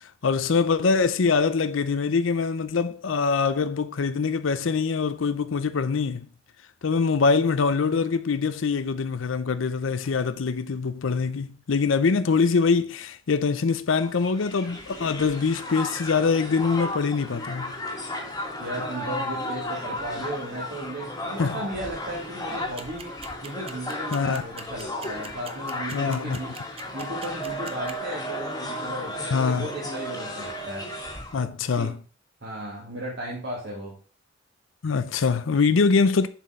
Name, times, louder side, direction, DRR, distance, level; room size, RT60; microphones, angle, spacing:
voice 1, 0.0-6.3 6.8-17.7 21.4-21.6 24.1-24.4 25.9-26.4 29.3-29.7 31.3-32.0 34.8-36.3, left 5 dB, 80° left, 0.5 m, -24 dB
Crowd, 14.0-31.4, left 1 dB, 20° left, 1.5 m, -34 dB
voice 2, 18.6-23.1 23.4-26.5 26.9-30.9 31.4-31.5 31.8-31.9 32.4-34.0, right 1 dB, 60° right, 2.2 m, -35 dB
sound 1, 22.8-27.9, right 6 dB, 30° right, 0.7 m, -41 dB
7.2 x 4.3 x 5.0 m
head